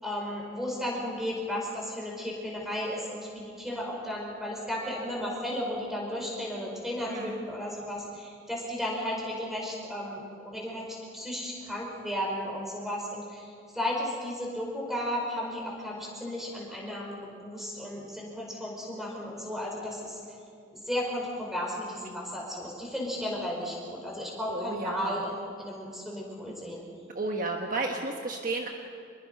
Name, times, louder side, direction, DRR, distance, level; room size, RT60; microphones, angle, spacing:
voice 1, 0.0-20.2 20.7-26.8, left 1 dB, ahead, -2 dB, 5.2 m, -34 dB
voice 2, 7.1-7.4 24.5-25.2 27.1-28.7, right 3 dB, 40° right, 2 dB, 1.3 m, -32 dB
26.5 x 22.0 x 5.5 m, 2.4 s
head